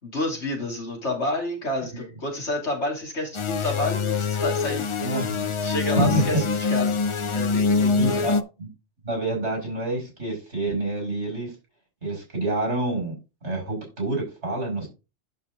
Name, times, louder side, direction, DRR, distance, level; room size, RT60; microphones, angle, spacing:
voice 1, 0.0-4.9 5.6-7.0 7.3-8.3, left 2 dB, 75° left, 0 dB, 3.3 m, -29 dB
sound 1, 3.3-8.4, left 4 dB, 50° left, 0.3 m, -24 dB
voice 2, 5.0-5.5 5.9-6.4 8.0-8.7 9.0-11.5 12.0-13.1 13.4-14.9, right 2 dB, 70° right, 0 dB, 6.0 m, -27 dB
11.0 x 4.8 x 3.8 m, 0.28 s
omnidirectional pair, 1.2 m